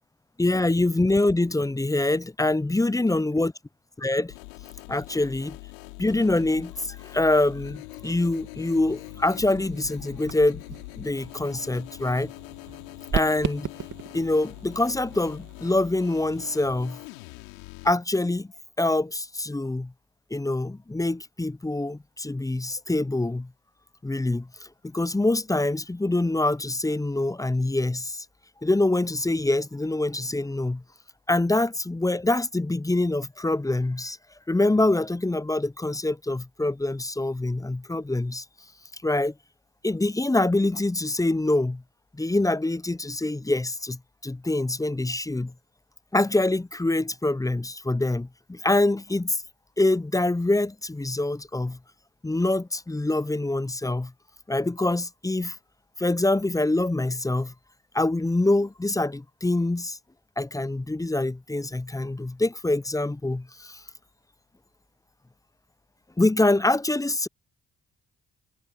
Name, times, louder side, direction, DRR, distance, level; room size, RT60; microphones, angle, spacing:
voice 1, 0.4-3.5 4.0-4.3 4.9-5.6 6.0-10.6 11.0-12.3 13.1-13.7 14.1-17.0 17.8-18.5 18.8-19.9 20.3-23.5 24.0-28.3 28.6-30.8 31.3-34.2 34.5-38.4 39.0-39.3 39.8-41.8 42.2-45.5 46.1-49.4 49.8-51.8 52.2-54.1 54.5-55.6 56.0-57.5 57.9-60.0 60.4-63.8 66.2-67.3, left 2 dB, 10° left, 0.7 m, -25 dB
sound 1, 4.3-17.9, left 29 dB, 85° left, 4.0 m, -43 dB
sound 2, 8.8-16.5, right 8 dB, 50° right, 2.8 m, -38 dB
hypercardioid pair, 50°, 39 cm